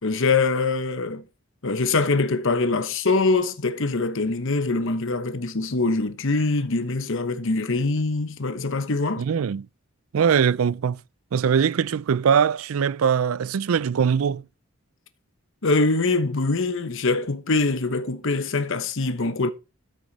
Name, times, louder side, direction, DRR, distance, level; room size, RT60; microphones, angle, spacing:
voice 1, 0.0-1.2 1.6-9.3 15.6-19.5, left 3 dB, 65° left, 1.0 m, -23 dB
voice 2, 9.2-9.7 10.1-11.0 11.3-14.4, right 7 dB, 90° right, 0.4 m, -21 dB
13.0 x 6.4 x 4.0 m
head